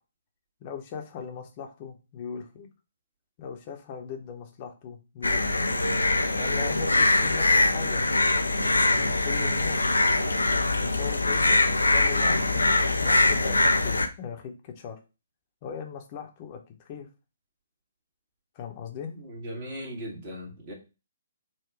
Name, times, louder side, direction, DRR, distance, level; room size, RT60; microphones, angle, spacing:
voice 1, 0.6-2.7 3.4-5.7 6.3-8.0 8.6-10.0 10.7-15.0 15.6-17.1 18.5-19.1, left 7 dB, 35° left, 4 dB, 0.9 m, -39 dB
sound 1, 5.2-14.1, left 2 dB, 80° left, 0.5 m, -23 dB
voice 2, 19.1-20.7, equal, 35° right, -1 dB, 1.6 m, -38 dB
4.0 x 2.4 x 4.6 m, 0.30 s
figure-of-eight pair, 130°, 0 cm